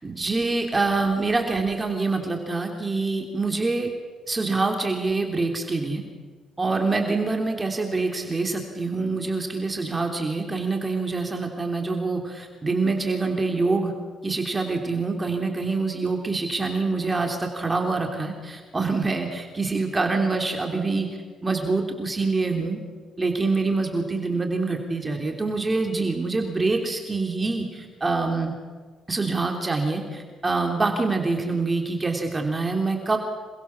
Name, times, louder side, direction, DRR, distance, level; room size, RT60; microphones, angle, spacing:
voice 1, 0.0-3.9 4.3-6.0 6.6-13.9 14.2-22.8 23.2-28.5 29.1-33.2, right 3 dB, 25° right, 3 dB, 3.2 m, -25 dB
27.0 x 22.5 x 7.2 m, 1.5 s
cardioid pair, 90°, 0 cm